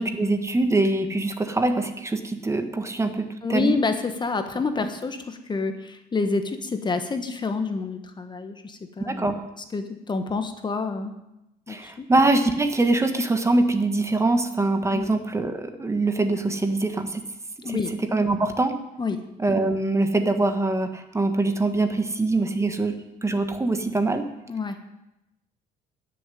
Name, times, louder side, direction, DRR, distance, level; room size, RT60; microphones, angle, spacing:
voice 1, 0.0-3.7 9.0-9.4 11.7-17.2 17.6-18.8 19.4-23.0 23.2-24.2, right 2 dB, 15° right, 8 dB, 1.4 m, -23 dB
voice 2, 3.4-9.3 9.7-11.1 11.7-12.1 14.9-15.1 17.6-17.9 19.0-19.2 24.5-24.8, left 4 dB, 25° left, 8 dB, 1.3 m, -28 dB
13.0 x 7.1 x 9.9 m, 0.90 s
cardioid pair, 110°, 17 cm